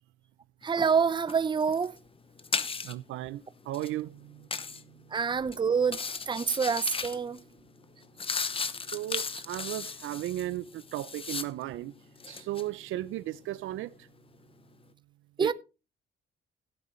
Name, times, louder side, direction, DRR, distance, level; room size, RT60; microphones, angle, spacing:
voice 1, 0.6-1.9 5.1-7.4 15.4-15.5, right 6 dB, 25° right, 0.6 m, -27 dB
sound 1, 0.7-1.0 1.3-3.1 3.6-3.9 4.5-4.8 5.4-5.6 5.8-7.4 7.8-11.8 12.1-12.7, left 5 dB, 25° left, 0.8 m, -36 dB
voice 2, 2.8-5.1 8.9-11.9 12.3-13.9 15.4-15.5, right 15 dB, 85° right, 0.6 m, -36 dB
16.5 x 8.1 x 3.2 m
cardioid pair, 90°, 20 cm